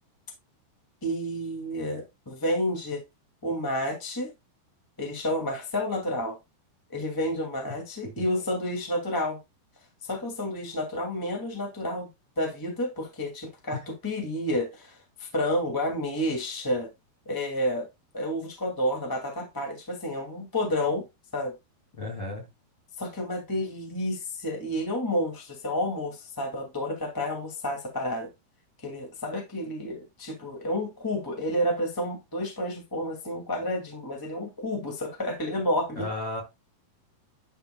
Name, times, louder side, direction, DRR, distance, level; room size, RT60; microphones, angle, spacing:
voice 1, 1.0-3.0 3.4-4.3 5.0-6.4 6.9-9.4 10.0-12.1 12.4-16.9 17.2-17.9 18.1-21.0 21.3-21.5 23.0-28.3 28.8-36.1, left 1 dB, 10° left, 1.0 m, -30 dB
voice 2, 22.0-22.5 36.0-36.4, left 2 dB, 30° left, 2.9 m, -33 dB
12.0 x 5.2 x 2.3 m
omnidirectional pair, 4.6 m